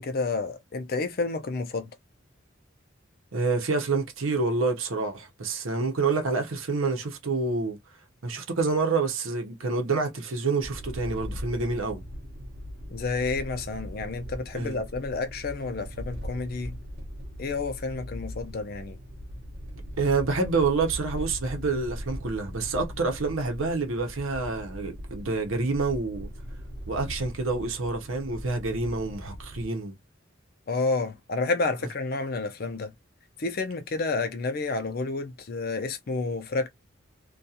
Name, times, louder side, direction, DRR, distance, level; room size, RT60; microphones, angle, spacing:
voice 1, 0.0-1.9 12.9-16.8 17.4-19.0 30.7-32.9 33.4-36.7, left 3 dB, 50° left, 0.5 m, -30 dB
voice 2, 3.3-7.8 8.2-12.0 14.5-14.8 20.0-26.3 26.9-29.9, right 3 dB, 85° right, 0.7 m, -27 dB
sound 1, 10.6-29.7, equal, 50° right, 0.7 m, -40 dB
2.4 x 2.3 x 2.7 m
head